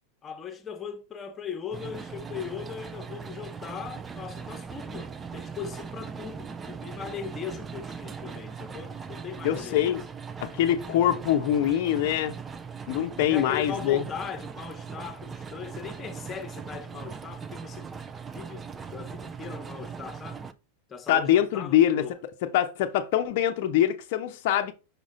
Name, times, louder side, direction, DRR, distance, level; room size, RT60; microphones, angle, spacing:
voice 1, 0.2-10.0 13.2-17.9 18.3-18.6 18.9-20.4 20.9-22.1, left 7 dB, 20° left, 1.1 m, -39 dB
sound 1, 1.7-20.5, right 6 dB, 15° right, 0.6 m, -40 dB
voice 2, 9.4-10.0 10.4-12.3 12.9-14.0 21.1-22.0 22.4-24.7, left 11 dB, 50° left, 0.7 m, -24 dB
6.2 x 5.1 x 3.7 m
figure-of-eight pair, 90°, 0 cm